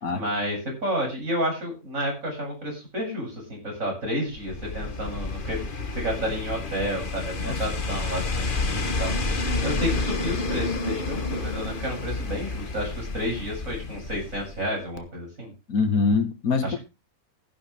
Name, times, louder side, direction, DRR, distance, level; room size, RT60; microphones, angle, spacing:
voice 1, 0.1-9.1 9.6-15.5 16.6-16.8, equal, 65° right, 8.4 m, -31 dB
sound 1, 4.3-14.7 15.0-15.1, left 3 dB, 35° left, 1.4 m, -30 dB
voice 2, 15.7-16.8, left 4 dB, 75° left, 2.1 m, -23 dB
14.5 x 11.0 x 3.5 m
omnidirectional pair, 1.5 m